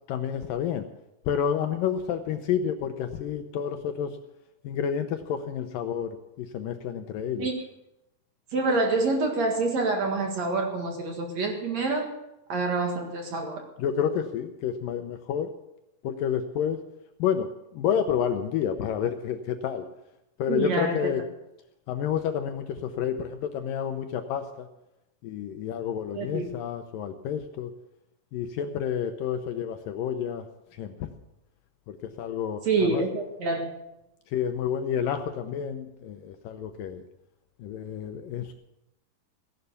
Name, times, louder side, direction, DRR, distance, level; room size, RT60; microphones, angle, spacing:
voice 1, 0.1-0.9 1.3-4.2 4.6-7.5 13.8-15.5 16.0-16.8 17.2-19.9 20.4-21.2 21.9-24.7 25.2-27.7 28.3-31.1 31.9-33.0 34.3-37.0 37.6-38.5, left 8 dB, 75° left, 7 dB, 2.2 m, -30 dB
voice 2, 8.5-12.1 12.5-13.6 20.5-21.1 26.1-26.5 32.6-33.7, right 3 dB, 50° right, 3 dB, 2.5 m, -27 dB
15.5 x 11.0 x 6.9 m, 0.89 s
omnidirectional pair, 4.6 m